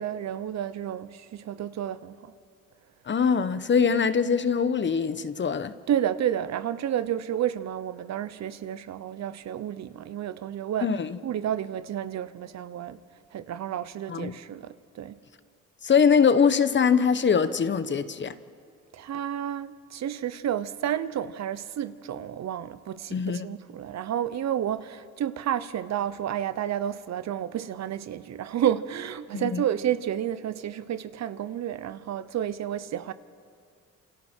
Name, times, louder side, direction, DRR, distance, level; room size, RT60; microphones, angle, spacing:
voice 1, 0.0-2.3 5.9-10.9 11.2-13.0 13.3-15.2 18.9-33.1, right 10 dB, 60° right, 0.9 m, -31 dB
voice 2, 3.1-5.7 10.8-11.2 14.1-14.4 15.8-18.3 23.1-23.5 29.3-29.6, left 6 dB, 40° left, 1.0 m, -23 dB
28.0 x 27.5 x 4.5 m
cardioid pair, 90°, 30 cm